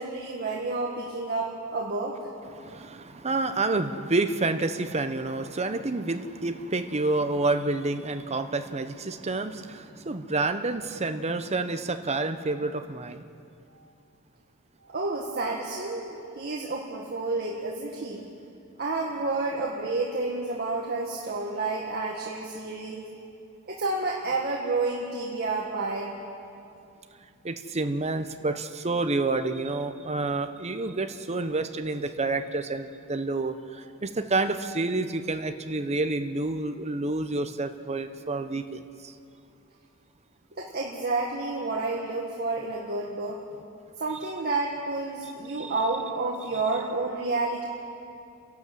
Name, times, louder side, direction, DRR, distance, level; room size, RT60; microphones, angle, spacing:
voice 1, 0.0-2.1 14.9-18.2 18.8-23.0 23.7-26.2 40.6-43.4 44.0-47.7, right 3 dB, 45° right, -2 dB, 1.8 m, -30 dB
voice 2, 2.5-13.3 27.4-39.1 45.6-45.7, right 3 dB, 30° right, 8 dB, 0.9 m, -29 dB
30.0 x 12.0 x 7.6 m, 2.6 s
head